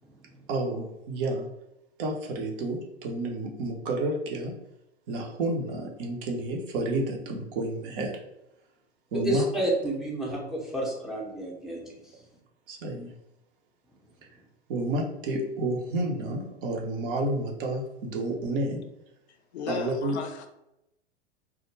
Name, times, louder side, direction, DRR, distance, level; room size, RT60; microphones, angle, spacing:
voice 1, 0.5-1.5 2.0-4.6 5.1-8.2 9.1-9.5 12.7-13.1 14.7-18.8 19.7-20.2, right 2 dB, 50° right, 1 dB, 0.6 m, -30 dB
voice 2, 9.1-12.2, right 1 dB, ahead, -4 dB, 0.6 m, -30 dB
voice 3, 19.5-20.5, left 5 dB, 70° left, 6 dB, 0.5 m, -35 dB
2.2 x 2.0 x 3.1 m, 0.87 s
figure-of-eight pair, 100°, 35 cm